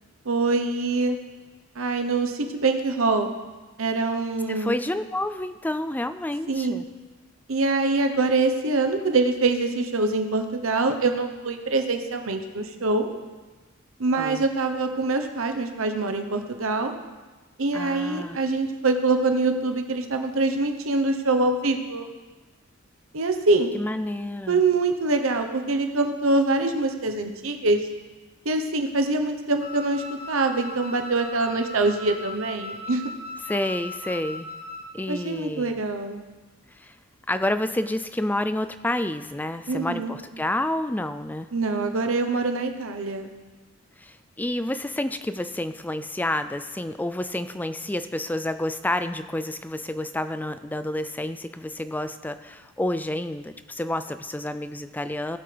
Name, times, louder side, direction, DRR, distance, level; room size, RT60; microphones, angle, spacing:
voice 1, 0.2-1.2 1.8-3.3 3.8-4.8 6.5-6.8 7.5-13.1 14.0-16.9 17.6-22.0 23.1-23.7 24.5-27.8 28.4-33.1 35.1-36.2 39.7-40.1 41.5-43.3, right 3 dB, 75° right, 6 dB, 1.0 m, -24 dB
voice 2, 4.5-6.8 14.2-14.4 17.7-18.4 23.7-24.6 33.4-34.5 34.9-35.8 36.7-37.0 37.3-41.5 44.0-55.4, left 1 dB, 10° left, 11 dB, 0.4 m, -29 dB
Wind instrument woodwind instrument, 29.6-34.9, left 2 dB, 30° right, 1.2 m, -38 dB
17.5 x 7.9 x 3.4 m, 1.3 s
head